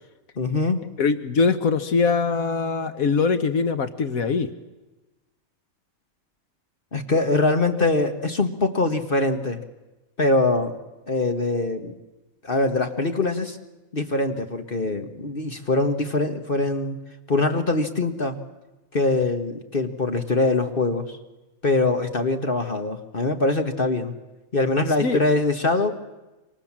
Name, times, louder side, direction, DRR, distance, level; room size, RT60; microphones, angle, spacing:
voice 1, 0.4-0.8 6.9-9.6 10.2-10.8 11.1-11.9 12.4-13.6 13.9-17.0 17.3-18.4 18.9-21.2 21.6-24.1 24.5-25.9, left 2 dB, 40° left, 6 dB, 1.6 m, -23 dB
voice 2, 1.0-4.5 25.0-25.2, left 4 dB, 80° left, 10 dB, 1.6 m, -22 dB
27.0 x 25.5 x 7.4 m, 1.1 s
omnidirectional pair, 1.5 m